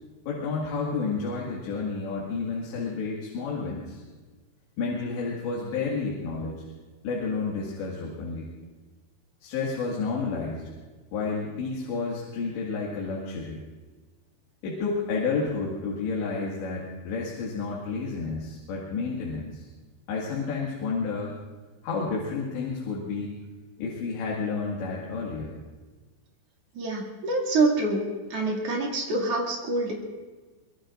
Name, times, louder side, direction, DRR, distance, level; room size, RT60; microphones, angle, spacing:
voice 1, 0.3-4.0 4.8-6.6 7.0-8.5 9.4-10.7 11.1-13.6 14.6-19.7 20.1-21.3 21.8-23.3 23.8-25.6, left 4 dB, 80° left, -4 dB, 4.2 m, -30 dB
voice 2, 26.7-28.0 28.3-29.9, right 2 dB, 40° right, -2 dB, 2.8 m, -26 dB
24.0 x 22.0 x 2.5 m, 1.3 s
omnidirectional pair, 5.1 m